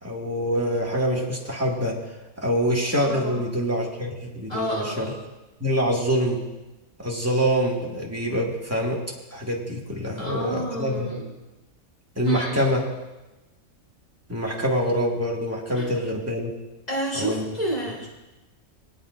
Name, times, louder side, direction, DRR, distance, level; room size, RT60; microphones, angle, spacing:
voice 1, 0.0-2.0 2.4-5.1 5.6-6.4 7.0-9.0 9.3-11.2 12.2-12.8 14.3-16.5 17.1-17.4, equal, 10° right, -3 dB, 1.9 m, -25 dB
voice 2, 3.0-3.4 4.5-5.2 10.2-11.3 12.2-12.7 15.7-15.9 16.9-18.1, right 1 dB, 25° left, -4 dB, 4.0 m, -30 dB
25.5 x 8.8 x 2.5 m, 1.1 s
omnidirectional pair, 1.5 m